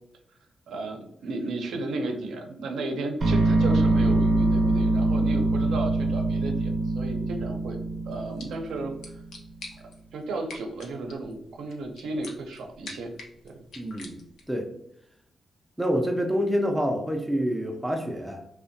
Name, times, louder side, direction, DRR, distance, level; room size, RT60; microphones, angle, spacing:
voice 1, 0.7-7.8 8.1-9.2 10.1-13.1 13.4-13.6, right 2 dB, 85° right, 3 dB, 0.5 m, -34 dB
sound 1, 3.2-9.2, right 2 dB, 45° right, 0.6 m, -24 dB
sound 2, 8.1-14.6, left 3 dB, 80° left, 0.6 m, -47 dB
voice 2, 13.8-14.2 14.5-14.7 15.8-18.5, equal, 5° right, 3 dB, 0.3 m, -27 dB
2.6 x 2.1 x 2.6 m, 0.76 s
wide cardioid pair, 130°, 0 cm